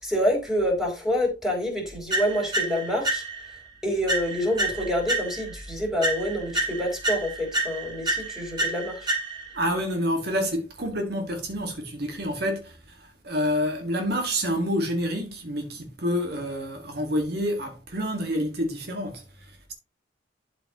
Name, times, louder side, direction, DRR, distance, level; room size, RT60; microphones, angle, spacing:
voice 1, 0.0-3.2 3.8-9.1, equal, ahead, 4.2 m, -27 dB
sound 1, 2.1-3.6 4.1-5.6 6.0-9.6, right 2 dB, 25° right, 4.0 m, -29 dB
voice 2, 9.5-19.7, equal, 60° right, 1.9 m, -28 dB
12.0 x 5.2 x 3.0 m
head